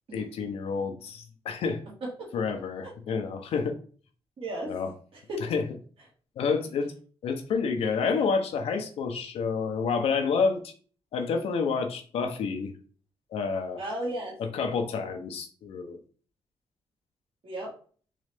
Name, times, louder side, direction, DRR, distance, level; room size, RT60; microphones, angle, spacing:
voice 1, 0.1-1.8 2.3-3.8 4.7-4.9 5.5-5.6 6.4-6.9 7.2-10.7 11.1-12.7 13.3-13.8 14.5-16.0, left 5 dB, 85° left, 6 dB, 0.7 m, -29 dB
voice 2, 4.4-4.7 5.1-5.5 13.8-14.4 17.4-17.7, right 1 dB, 65° right, -5 dB, 1.8 m, -34 dB
3.8 x 3.1 x 3.4 m, 0.42 s
cardioid pair, 95°, 10 cm